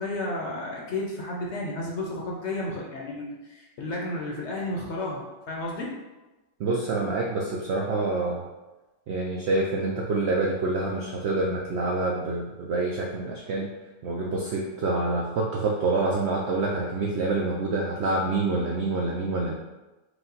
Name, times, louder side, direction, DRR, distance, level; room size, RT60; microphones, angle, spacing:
voice 1, 0.0-5.9, left 2 dB, 60° left, -2 dB, 0.8 m, -32 dB
voice 2, 6.6-8.4 9.1-13.7 14.0-19.5, right 3 dB, 75° right, -1 dB, 0.6 m, -27 dB
4.9 x 2.3 x 3.9 m, 1.1 s
omnidirectional pair, 1.6 m